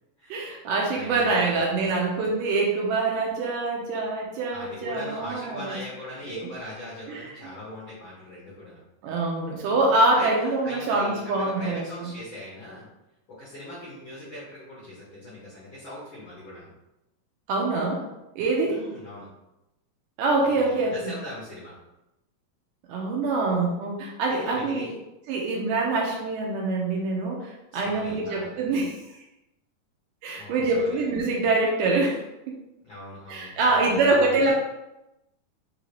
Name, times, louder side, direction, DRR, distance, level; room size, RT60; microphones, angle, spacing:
voice 1, 0.3-5.8 6.4-6.5 7.1-7.3 9.0-12.1 17.5-18.0 18.4-18.8 20.2-21.1 22.9-24.9 25.3-29.0 30.2-32.2 32.5-32.6 33.3-34.5, right 3 dB, 80° right, -2 dB, 2.2 m, -25 dB
voice 2, 0.9-1.9 4.5-8.8 10.1-12.9 13.3-16.7 18.6-19.3 20.5-21.8 24.3-24.9 27.7-28.6 30.4-31.0 32.8-34.5, left 1 dB, 65° left, -8 dB, 1.2 m, -40 dB
5.6 x 2.6 x 3.2 m, 0.93 s
omnidirectional pair, 3.9 m